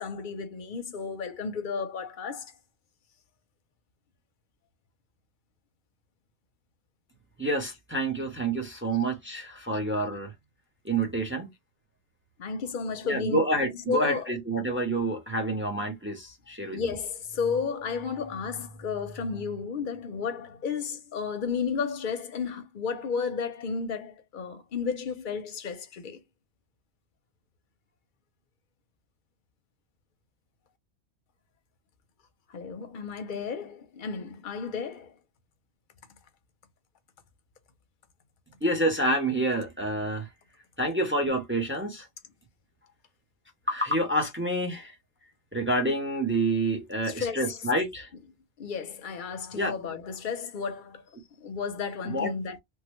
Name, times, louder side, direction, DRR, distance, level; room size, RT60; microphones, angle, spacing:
voice 1, 0.0-2.5 12.4-13.4 13.9-14.3 16.7-26.2 32.5-35.1 47.0-47.7 48.6-51.0 51.4-52.6, left 5 dB, 55° left, 0.7 m, -33 dB
voice 2, 7.4-10.3 10.8-11.5 13.0-16.8 38.6-40.3 40.8-42.1 43.7-44.9 45.5-48.1 49.5-49.8 52.1-52.3, right 1 dB, 15° right, 0.5 m, -28 dB
3.1 x 2.2 x 2.9 m
omnidirectional pair, 1.1 m